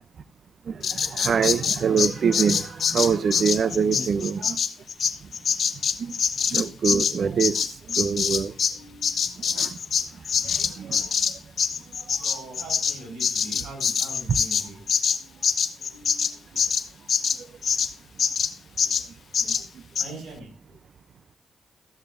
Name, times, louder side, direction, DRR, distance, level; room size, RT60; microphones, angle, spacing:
voice 1, 0.7-4.6 6.0-6.1 6.5-7.6 8.0-8.5 9.6-9.7 10.8-11.0 14.3-14.4, right 6 dB, 65° right, 0.6 m, -24 dB
Bird vocalization bird call bird song, 0.8-8.8 9.0-17.9 18.2-18.5 18.8-19.1 19.3-19.6 20.0-20.1, left 7 dB, 65° left, 1.0 m, -25 dB
voice 2, 3.6-4.3 8.7-9.3 12.1-14.8 15.8-16.4 18.8-18.9 20.0-20.8, right 1 dB, 85° right, 5.5 m, -42 dB
15.0 x 13.0 x 2.6 m
supercardioid pair, 50°, 0 cm